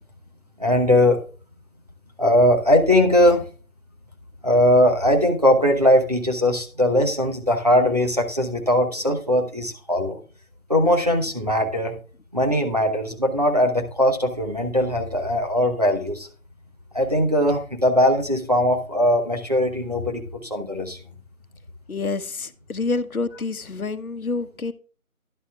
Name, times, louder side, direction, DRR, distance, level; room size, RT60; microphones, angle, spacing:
voice 1, 0.6-1.2 2.2-3.5 4.4-10.2 10.7-12.0 12.3-16.3 16.9-21.0, left 1 dB, 30° right, 2 dB, 0.9 m, -20 dB
voice 2, 21.9-24.7, left 3 dB, 80° left, 12 dB, 1.0 m, -28 dB
11.0 x 10.5 x 2.3 m, 0.37 s
figure-of-eight pair, 170°, 42 cm